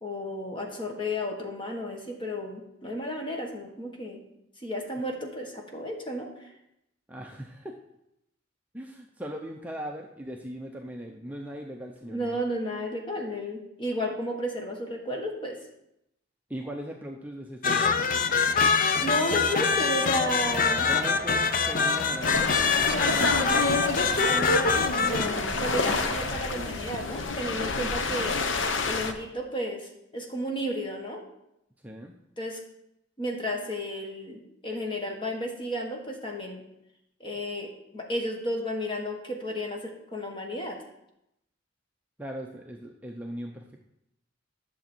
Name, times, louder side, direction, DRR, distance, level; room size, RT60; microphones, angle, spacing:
voice 1, 0.0-4.2 4.6-6.5 12.0-15.6 19.0-20.9 22.9-28.5 28.8-31.2 32.4-32.6 33.2-36.6 37.2-40.8, equal, 25° left, 1 dB, 1.6 m, -33 dB
voice 2, 7.1-7.8 8.7-12.4 16.5-18.0 20.9-22.5 27.8-27.9 31.8-32.1 42.2-43.6, right 1 dB, 10° right, 1 dB, 0.6 m, -39 dB
sound 1, 17.6-25.3, left 5 dB, 45° left, 0.5 m, -25 dB
Wind, 19.4-27.8, right 1 dB, 30° right, 1.7 m, -41 dB
sound 2, 22.2-29.1, left 3 dB, 80° left, 0.8 m, -28 dB
11.0 x 7.1 x 4.5 m, 0.83 s
head